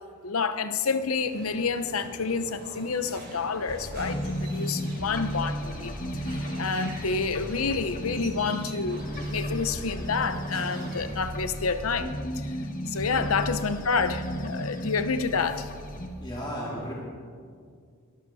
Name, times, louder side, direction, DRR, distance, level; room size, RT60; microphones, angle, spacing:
voice 1, 0.2-5.9 6.2-12.6 12.9-15.7, left 4 dB, 75° left, 11 dB, 0.8 m, -29 dB
sound 1, 1.2-11.1, right 1 dB, 45° right, 3.9 m, -46 dB
sound 2, 1.6-11.3, right 2 dB, 70° right, 4.5 m, -50 dB
sound 3, 3.7-16.1, equal, 40° left, 1.5 m, -34 dB
voice 2, 16.0-16.9, equal, 20° left, -5 dB, 2.2 m, -36 dB
22.5 x 13.5 x 4.2 m, 2.1 s
head